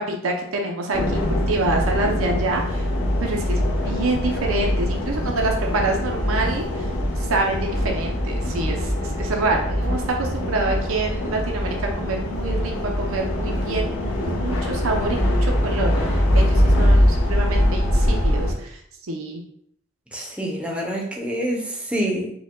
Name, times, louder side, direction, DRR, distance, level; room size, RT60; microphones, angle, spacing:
voice 1, 0.0-2.8 3.2-6.9 7.3-18.8 19.1-19.4, right 2 dB, 90° right, 1 dB, 0.6 m, -27 dB
sound 1, 0.9-18.5, left 1 dB, 80° left, 0.9 m, -22 dB
voice 2, 20.1-22.3, equal, 5° right, -1 dB, 0.6 m, -27 dB
4.8 x 2.2 x 3.7 m, 0.69 s
head